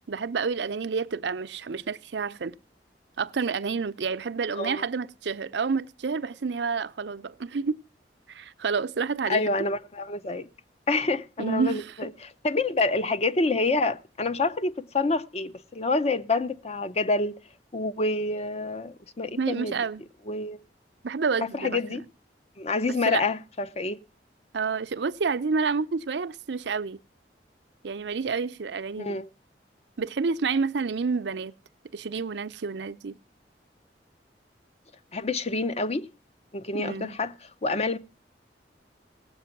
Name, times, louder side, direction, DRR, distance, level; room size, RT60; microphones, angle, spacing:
voice 1, 0.1-2.6 3.2-7.8 8.3-9.4 11.4-11.9 19.4-20.0 21.0-22.0 23.1-23.2 24.5-27.0 27.8-29.2 30.0-31.5 31.9-33.2 36.7-37.2, right 5 dB, 75° right, 0.6 m, -29 dB
voice 2, 9.3-10.5 10.9-17.4 17.7-19.7 20.3-20.6 21.5-22.0 22.6-24.0 29.0-29.3 35.1-36.1 36.5-37.3 37.6-38.0, left 3 dB, 35° left, 0.6 m, -27 dB
18.0 x 7.7 x 5.8 m
head